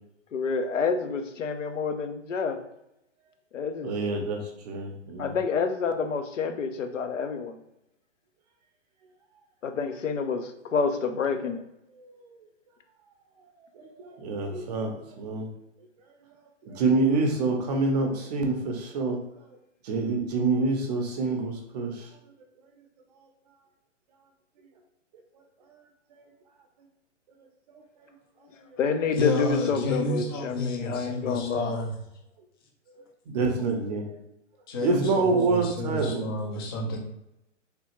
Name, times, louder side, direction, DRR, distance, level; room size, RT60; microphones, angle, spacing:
voice 1, 0.3-2.6 3.5-3.9 5.2-7.6 9.6-11.6 28.8-31.7, left 5 dB, 85° left, 6 dB, 0.6 m, -28 dB
voice 2, 3.8-5.4 12.0-12.1 13.8-15.5 16.6-19.2 19.8-22.1 27.7-27.8 28.9-29.1 33.3-34.1 34.8-36.4, right 3 dB, 35° right, 2 dB, 0.6 m, -27 dB
voice 3, 29.1-32.0 34.7-37.0, left 1 dB, 20° left, 1 dB, 0.4 m, -30 dB
3.2 x 2.3 x 3.0 m, 0.83 s
hypercardioid pair, 130°, 37 cm